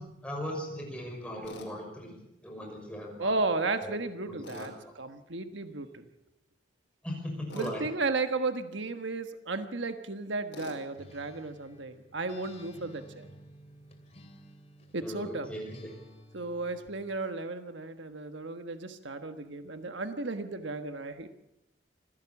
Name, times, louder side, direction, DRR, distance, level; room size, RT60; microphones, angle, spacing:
voice 1, 0.0-2.2 2.4-3.4 3.8-4.0 4.2-4.7 7.0-7.8 15.0-15.9, equal, 5° left, 0 dB, 6.1 m, -38 dB
Tools, 1.4-1.7 4.4-4.8 7.5-7.8 10.5-10.8, left 2 dB, 85° left, 5.2 m, -44 dB
voice 2, 3.2-6.1 7.5-13.3 14.9-15.5 16.3-21.3, right 3 dB, 75° right, 8 dB, 1.4 m, -34 dB
Acoustic guitar, 10.9-15.1 15.7-17.2, equal, 35° left, 2.8 m, -53 dB
25.5 x 16.0 x 7.2 m, 0.87 s
head